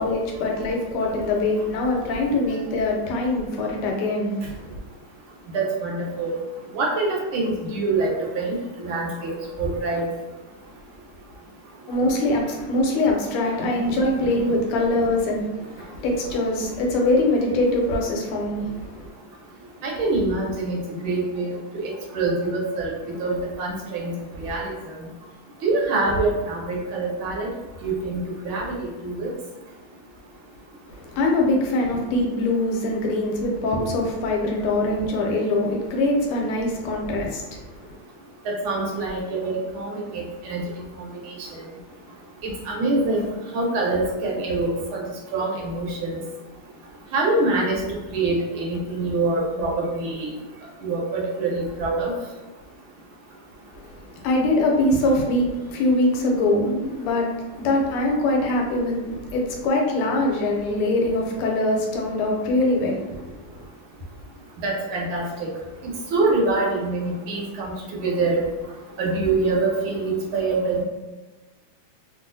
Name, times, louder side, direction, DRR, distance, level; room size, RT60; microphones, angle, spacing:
voice 1, 0.0-4.8 11.9-19.1 30.9-38.0 53.7-63.7, left 2 dB, 80° left, 0 dB, 1.5 m, -23 dB
voice 2, 5.5-6.4 6.7-10.1 19.8-24.1 24.4-25.0 25.6-27.5 27.8-29.3 38.4-40.6 41.0-41.1 42.7-43.3 43.5-45.0 45.3-46.2 47.1-47.8 48.1-50.3 50.8-52.1 64.6-65.5 66.1-67.7 68.0-68.4 69.0-70.8, right 3 dB, 75° right, -3 dB, 1.5 m, -25 dB
3.5 x 2.4 x 2.6 m, 1.2 s
omnidirectional pair, 2.4 m